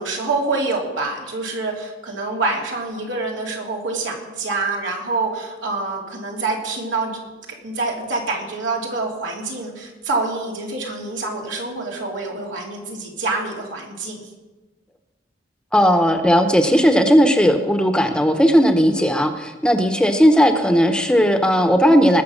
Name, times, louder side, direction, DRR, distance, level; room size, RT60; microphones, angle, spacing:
voice 1, 0.0-7.2 7.6-14.3, right 3 dB, 90° right, -1 dB, 3.1 m, -26 dB
voice 2, 15.7-22.2, equal, 5° left, 6 dB, 0.9 m, -16 dB
20.0 x 6.9 x 6.4 m, 1.2 s
head